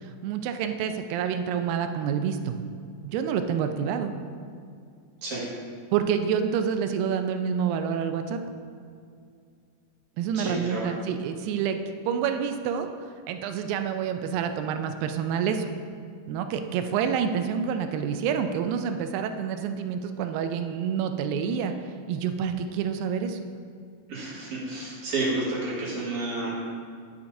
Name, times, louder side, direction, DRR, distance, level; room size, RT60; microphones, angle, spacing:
voice 1, 0.2-2.6 3.0-4.1 5.9-8.4 10.2-11.8 12.1-12.9 13.3-15.7 16.3-21.7 22.1-23.4, right 7 dB, 80° right, 7 dB, 2.1 m, -28 dB
voice 2, 10.3-10.9 24.1-26.5, right 2 dB, 55° right, -7 dB, 3.0 m, -30 dB
11.5 x 6.5 x 2.6 m, 2.3 s
omnidirectional pair, 4.4 m